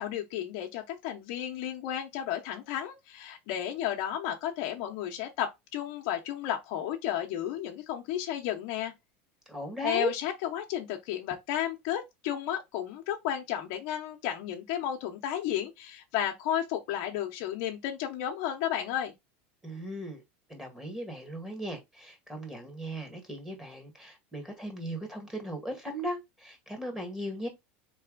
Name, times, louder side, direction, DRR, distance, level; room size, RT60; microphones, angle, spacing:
voice 1, 0.0-8.9 9.8-19.1, left 11 dB, 60° left, 0.8 m, -33 dB
voice 2, 9.5-10.1 19.6-20.2 20.5-27.5, equal, 10° right, 1.7 m, -37 dB
4.1 x 3.3 x 3.7 m
supercardioid pair, 130°, 6 cm